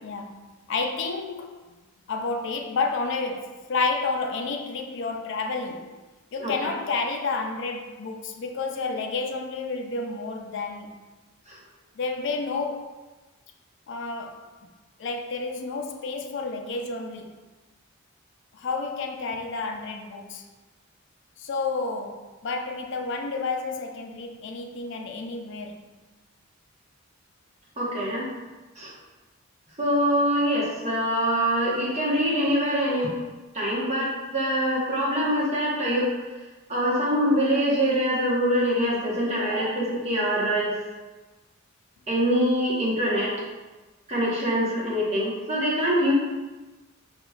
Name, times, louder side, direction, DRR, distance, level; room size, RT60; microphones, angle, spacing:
voice 1, 0.0-1.6 2.1-6.0 6.3-11.0 12.0-13.0 13.9-14.5 15.0-17.4 18.5-20.5 21.4-25.9, left 3 dB, 60° left, 0.4 m, -30 dB
voice 2, 27.8-28.3 28.8-28.9 29.8-33.1 33.5-36.1 36.7-40.8 42.1-43.3 44.1-46.1, equal, 30° right, 1.1 m, -24 dB
5.7 x 2.9 x 2.3 m
head